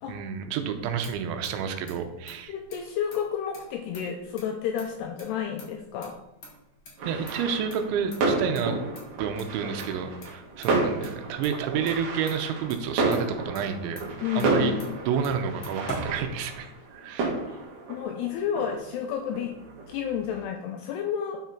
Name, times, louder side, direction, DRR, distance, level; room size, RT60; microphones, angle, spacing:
voice 1, 0.1-2.5 7.1-8.8 9.2-14.0 14.4-14.7 15.1-17.3, right 7 dB, 90° right, 7 dB, 3.0 m, -30 dB
Motor vehicle (road), 0.6-16.9, equal, 45° left, 1.6 m, -46 dB
voice 2, 2.5-6.2 14.2-14.9 17.5-17.6 17.9-19.6 19.9-21.5, left 8 dB, 85° left, 4 dB, 2.4 m, -31 dB
sound 1, 7.0-20.4, right 3 dB, 55° right, 2.9 m, -31 dB
10.0 x 5.9 x 4.4 m, 0.88 s
omnidirectional pair, 5.4 m